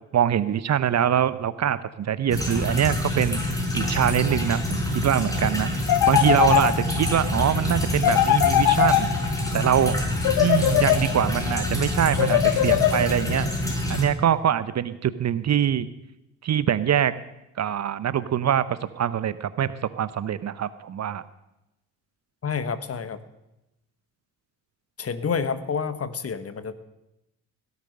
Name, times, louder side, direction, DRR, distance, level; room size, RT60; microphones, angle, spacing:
voice 1, 0.1-3.4 3.7-5.7 6.1-9.1 9.5-10.0 10.4-13.5 13.9-15.9 16.4-17.1 17.6-21.2, right 9 dB, 40° right, 16 dB, 0.7 m, -24 dB
sound 1, 2.3-14.0, left 1 dB, 10° left, 4.9 m, -27 dB
sound 2, 5.9-7.1 8.0-9.5 10.2-11.4 12.2-13.4, left 13 dB, 55° left, 0.9 m, -21 dB
voice 2, 22.4-23.2 25.0-26.7, left 6 dB, 35° left, 13 dB, 1.2 m, -28 dB
17.5 x 8.3 x 6.5 m, 0.92 s
hypercardioid pair, 45°, 41 cm